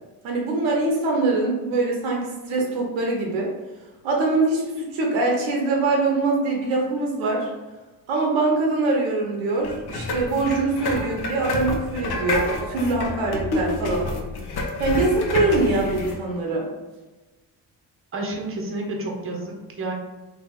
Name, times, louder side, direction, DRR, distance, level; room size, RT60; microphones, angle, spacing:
voice 1, 0.2-3.5 4.0-7.5 8.1-14.1 14.8-16.7, right 3 dB, 80° right, -1 dB, 1.0 m, -23 dB
sound 1, 9.6-16.1, left 2 dB, 55° left, 0.9 m, -28 dB
voice 2, 18.1-19.9, right 2 dB, 30° right, 1 dB, 0.9 m, -30 dB
2.9 x 2.9 x 3.8 m, 1.2 s
hypercardioid pair, 50°, 46 cm